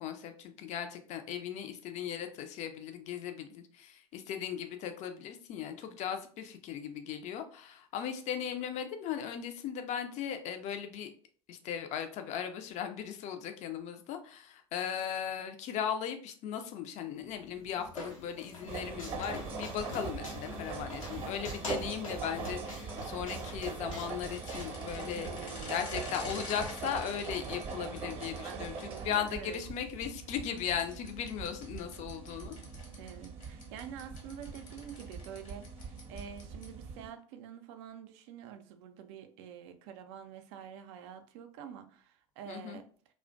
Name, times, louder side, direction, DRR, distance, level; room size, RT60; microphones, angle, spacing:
voice 1, 0.0-11.1 11.5-25.3 25.7-32.5 42.5-42.8, left 8 dB, 45° left, 0.4 m, -37 dB
sound 1, 17.2-25.4, left 2 dB, 90° left, 0.7 m, -46 dB
sound 2, 18.7-37.1, right 5 dB, 35° right, 0.7 m, -42 dB
sound 3, 24.1-29.6 30.4-36.8, left 3 dB, 70° left, 1.0 m, -49 dB
voice 2, 25.2-25.9 28.4-29.6 33.0-42.9, right 8 dB, 60° right, 0.4 m, -47 dB
2.4 x 2.1 x 2.5 m
hypercardioid pair, 75°, 17 cm